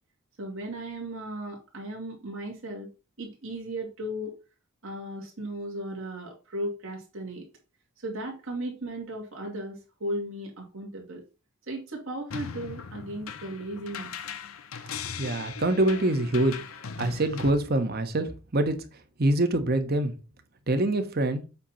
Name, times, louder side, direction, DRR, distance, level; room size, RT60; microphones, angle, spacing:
voice 1, 0.4-2.9 3.2-4.3 4.8-7.5 8.0-11.2 11.7-14.1, right 1 dB, 70° right, 2.3 m, -36 dB
sound 1, 12.3-17.5, left 6 dB, 75° left, 0.8 m, -39 dB
voice 2, 15.2-16.6 17.0-18.8 19.2-20.1 20.7-21.4, right 1 dB, 45° right, 1.1 m, -25 dB
8.0 x 2.9 x 5.6 m
head